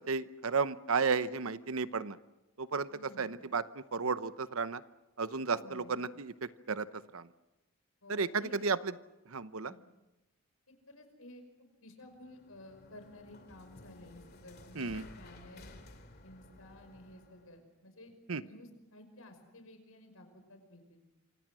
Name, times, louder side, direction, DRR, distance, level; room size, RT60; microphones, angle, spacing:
voice 1, 0.1-2.2 2.6-4.8 5.2-6.9 7.1-7.3 8.1-8.9 9.3-9.7 14.8-15.0 18.3-18.4, right 5 dB, 75° right, 14 dB, 0.9 m, -33 dB
voice 2, 2.9-3.3 5.6-5.9 8.0-8.6 9.6-9.8 10.9-15.8 16.2-18.1 18.4-21.0, left 1 dB, 75° left, 7 dB, 5.6 m, -54 dB
sound 1, 12.0-17.6, left 2 dB, 45° left, 2.6 m, -55 dB
27.5 x 26.0 x 6.3 m, 0.99 s
head